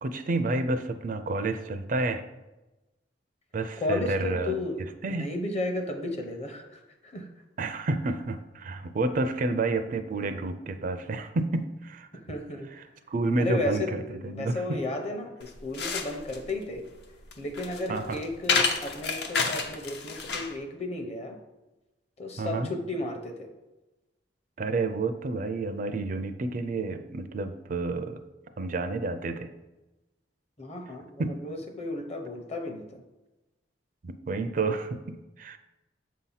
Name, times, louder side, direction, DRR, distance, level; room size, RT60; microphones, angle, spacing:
voice 1, 0.0-2.2 3.5-4.5 5.0-5.3 7.6-12.1 13.1-13.8 14.2-14.8 17.9-18.2 22.4-22.7 24.6-28.2 28.6-29.5 31.2-31.4 34.0-35.6, right 3 dB, 50° right, 9 dB, 0.4 m, -30 dB
voice 2, 3.8-4.8 5.1-7.3 12.1-12.7 13.4-16.8 17.4-21.4 22.2-23.5 30.6-33.0, left 2 dB, 35° left, 5 dB, 0.8 m, -33 dB
sound 1, 15.4-20.6, left 4 dB, 65° left, 0.7 m, -30 dB
7.5 x 2.8 x 5.7 m, 1.0 s
head